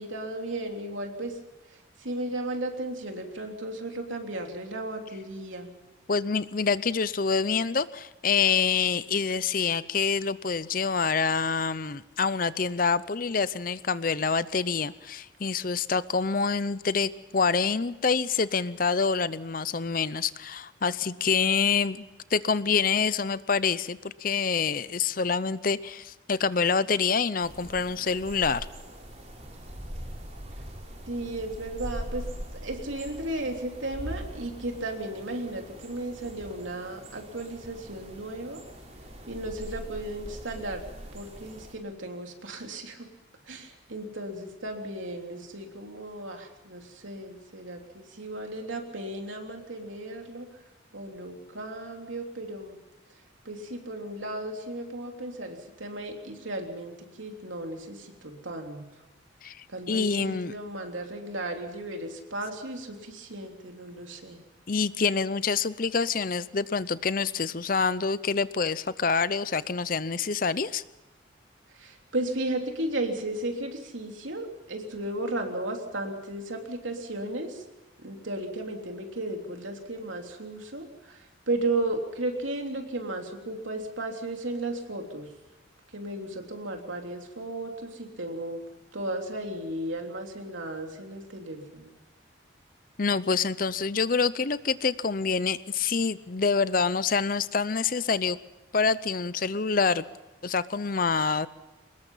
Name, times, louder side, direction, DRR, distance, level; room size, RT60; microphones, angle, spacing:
voice 1, 0.0-1.3 2.0-5.7 31.1-32.2 32.5-38.6 39.3-40.8 41.1-43.1 43.5-50.5 50.9-52.8 53.4-58.9 59.7-64.4 71.7-77.6 78.0-85.3 85.9-88.6 88.9-91.9, right 1 dB, 80° right, 3 dB, 3.3 m, -35 dB
voice 2, 6.1-22.0 22.3-28.7 59.4-60.5 64.7-70.8 93.0-98.4 98.7-100.0 100.4-101.5, left 5 dB, 45° left, 16 dB, 0.6 m, -26 dB
sound 1, 27.4-41.7, equal, 35° right, 4.9 m, -42 dB
23.5 x 20.5 x 5.7 m, 1.0 s
head